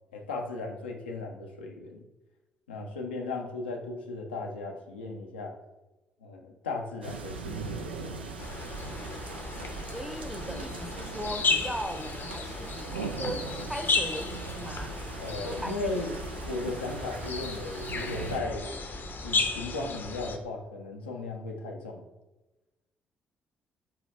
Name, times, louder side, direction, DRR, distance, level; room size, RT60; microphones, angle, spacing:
voice 1, 0.1-2.0 2.7-5.6 6.2-8.2 15.2-16.1 16.5-18.7 19.2-22.0, left 3 dB, 85° left, 0.5 m, -36 dB
sound 1, 7.0-18.4, right 4 dB, 85° right, 0.3 m, -40 dB
sound 2, 8.4-20.4, left 4 dB, 40° left, 0.6 m, -34 dB
voice 2, 9.9-15.0 15.4-15.9, equal, 5° right, 0.5 m, -38 dB
5.6 x 2.3 x 3.1 m
figure-of-eight pair, 45°, 5 cm